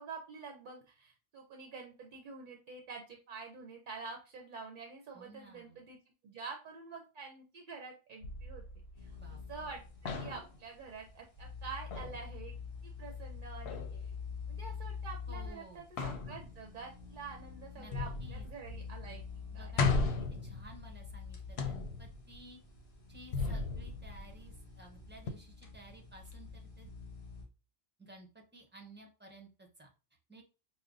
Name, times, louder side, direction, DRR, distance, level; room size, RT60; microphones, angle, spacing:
voice 1, 0.0-6.0 6.2-8.6 9.0-12.5 12.8-14.1 14.5-19.2 19.5-19.7, right 5 dB, 55° right, 2 dB, 0.6 m, -47 dB
voice 2, 5.1-5.8 9.2-9.4 15.3-15.8 17.8-17.9 18.2-18.5 19.5-20.2 20.4-22.6 23.1-26.9 28.0-29.9 30.3-30.4, right 2 dB, 10° right, 1 dB, 0.6 m, -55 dB
sound 1, 8.2-9.7 10.1-10.6 11.9-12.2 13.7-14.0 16.0-16.8 17.9-18.9 19.2-19.3 19.8-21.1 21.6-22.4 23.3-24.7 25.3-25.4, left 4 dB, 80° left, 0.8 m, -36 dB
sound 2, 8.9-27.4, left 5 dB, 60° left, 1.2 m, -47 dB
5.1 x 2.0 x 2.4 m, 0.33 s
omnidirectional pair, 1.1 m